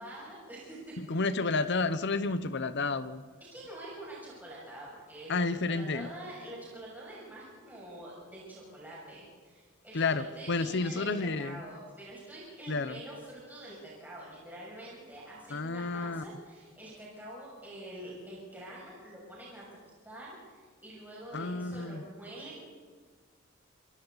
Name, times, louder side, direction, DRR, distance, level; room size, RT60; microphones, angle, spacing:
voice 1, 0.0-1.0 3.5-19.8 20.0-22.7, right 1 dB, 10° right, -7 dB, 6.8 m, -46 dB
voice 2, 1.0-3.2 5.3-6.1 9.9-11.6 12.7-13.0 15.5-16.2 21.3-22.0, left 3 dB, 60° left, 13 dB, 0.9 m, -31 dB
27.5 x 25.0 x 4.1 m, 1.5 s
head